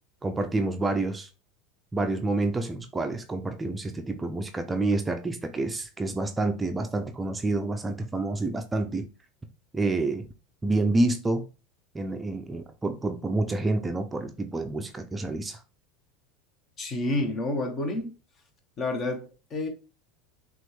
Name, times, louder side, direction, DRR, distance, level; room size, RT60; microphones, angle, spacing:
voice 1, 0.2-1.3 1.9-9.1 9.7-10.3 10.6-11.5 11.9-15.6, right 2 dB, 15° right, 0.6 m, -28 dB
voice 2, 16.8-18.1 18.8-19.7, left 2 dB, 35° left, 1.3 m, -29 dB
5.9 x 2.5 x 3.3 m
hypercardioid pair, 85°, 0 cm